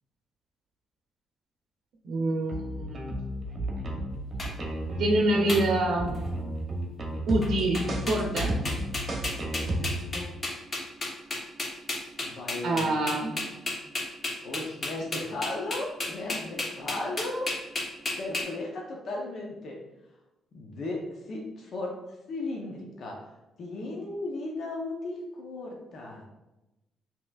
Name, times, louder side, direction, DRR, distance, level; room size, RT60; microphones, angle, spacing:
voice 1, 2.0-3.1 5.0-6.1 7.3-8.5 12.6-13.5, right 1 dB, 75° right, 0 dB, 0.6 m, -26 dB
sound 1, 2.5-10.2, right 1 dB, 40° right, 0.8 m, -32 dB
sound 2, 4.4-4.5 5.5-5.6 6.1-6.4 7.4-7.5 7.7-18.4, left 2 dB, 40° left, 1.0 m, -32 dB
voice 2, 12.2-12.9 14.4-17.5 18.2-19.8 20.5-21.9 22.3-23.3 23.6-26.2, left 2 dB, 60° left, -1 dB, 0.6 m, -35 dB
5.4 x 2.9 x 2.3 m, 0.99 s
cardioid pair, 90°, 0 cm